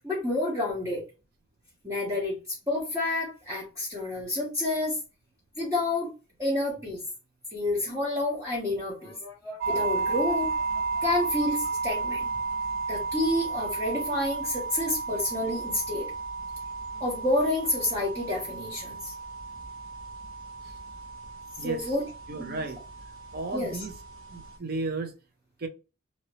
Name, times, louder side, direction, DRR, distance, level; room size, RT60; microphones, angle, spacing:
voice 1, 0.0-1.0 1.8-5.0 5.6-6.1 6.4-7.0 7.5-9.1 9.7-10.5 11.0-12.3 12.9-16.1 17.0-19.1 21.6-22.1 22.4-22.6 23.5-23.8, left 2 dB, 15° right, 1.0 m, -29 dB
sound 1, 8.9-12.4, left 1 dB, 15° left, 0.8 m, -46 dB
sound 2, 9.6-24.6, right 4 dB, 70° right, 1.2 m, -33 dB
voice 2, 21.6-21.9 22.3-22.8 23.3-23.9 24.3-25.1 25.6-25.7, right 3 dB, 45° right, 0.6 m, -34 dB
2.9 x 2.8 x 3.0 m
head